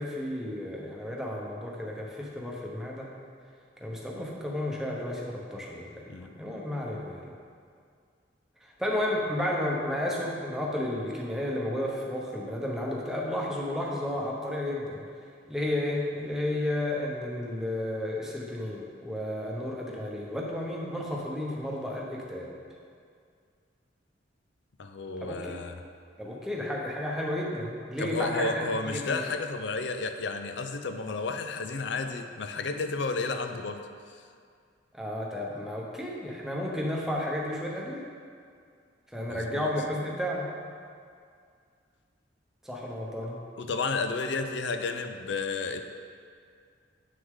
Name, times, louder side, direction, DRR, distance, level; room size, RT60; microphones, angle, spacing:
voice 1, 0.0-3.1 3.8-5.9 6.4-7.3 8.6-15.0 15.5-22.5 25.2-25.6 26.2-29.2 34.9-38.1 39.1-40.5 42.6-43.4, left 1 dB, 5° right, -3 dB, 0.9 m, -32 dB
voice 2, 24.8-25.8 28.0-33.9 39.3-39.7 43.6-45.8, left 4 dB, 70° left, 7 dB, 0.5 m, -32 dB
7.9 x 6.4 x 3.7 m, 2.2 s
head